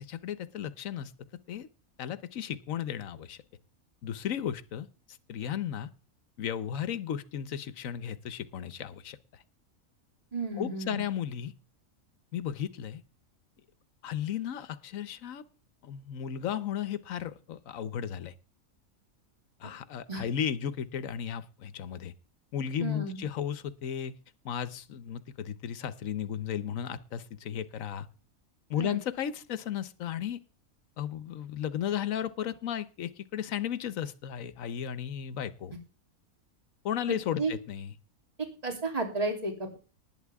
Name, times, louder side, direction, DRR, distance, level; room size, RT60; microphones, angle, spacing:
voice 1, 0.1-1.1 1.5-1.7 2.0-3.4 4.0-4.9 5.3-5.9 6.4-9.4 10.6-11.5 12.3-13.0 14.0-15.4 15.8-18.3 19.6-22.1 22.5-24.1 24.4-28.1 28.7-30.4 31.0-35.7 36.8-37.9, left 9 dB, 70° left, 14 dB, 1.3 m, -34 dB
voice 2, 10.3-11.0 20.1-20.2 22.8-23.2 28.7-29.0 37.4-37.5 38.6-39.8, right 2 dB, 25° right, 2 dB, 3.3 m, -32 dB
19.5 x 9.0 x 3.6 m, 0.35 s
omnidirectional pair, 1.5 m